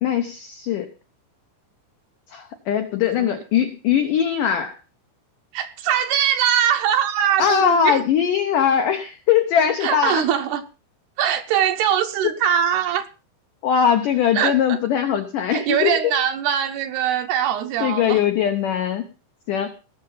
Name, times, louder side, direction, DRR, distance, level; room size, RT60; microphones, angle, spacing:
voice 1, 0.0-0.9 2.3-4.8 7.4-10.3 13.6-16.1 17.8-19.0 19.5-19.7, left 8 dB, 90° left, 1.8 m, -21 dB
voice 2, 5.5-8.0 9.8-10.6 11.2-13.1 14.3-14.8 15.5-18.2, right 9 dB, 75° right, 2.5 m, -22 dB
19.5 x 6.7 x 5.5 m
omnidirectional pair, 5.3 m